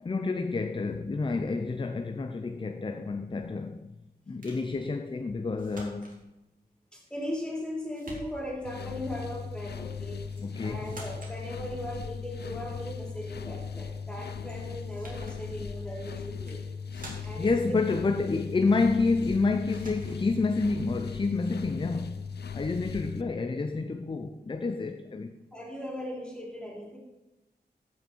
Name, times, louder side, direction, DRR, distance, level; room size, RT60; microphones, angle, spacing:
voice 1, 0.0-3.9 4.3-6.3 10.4-11.0 17.4-25.4, left 3 dB, 30° left, 0.5 m, -29 dB
sound 1, 4.4-4.7 5.6-6.2 7.2-7.7 7.9-8.6 10.3-10.5 10.8-11.4 14.5-14.6 14.9-15.4 16.3-16.6 16.9-17.5 19.2-19.4 19.7-20.2, right 2 dB, 55° right, 2.6 m, -47 dB
voice 2, 6.9-10.2 10.6-16.6 17.2-17.8 25.5-27.0, equal, 5° left, 3.4 m, -38 dB
sound 2, 8.6-23.2, left 6 dB, 75° left, 0.6 m, -38 dB
15.0 x 5.7 x 4.4 m
wide cardioid pair, 110°, 17 cm